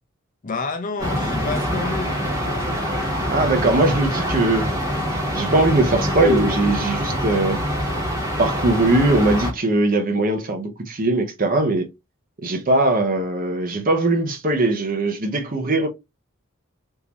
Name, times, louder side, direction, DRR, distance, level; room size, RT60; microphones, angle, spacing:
voice 1, 0.4-2.8, left 3 dB, 40° left, 0.6 m, -30 dB
sound 1, 1.0-9.5, equal, 15° right, 1.3 m, -24 dB
voice 2, 3.3-4.7 5.3-7.6 8.4-11.9 12.4-15.9, right 2 dB, 40° right, 0.8 m, -20 dB
3.7 x 2.7 x 2.9 m
head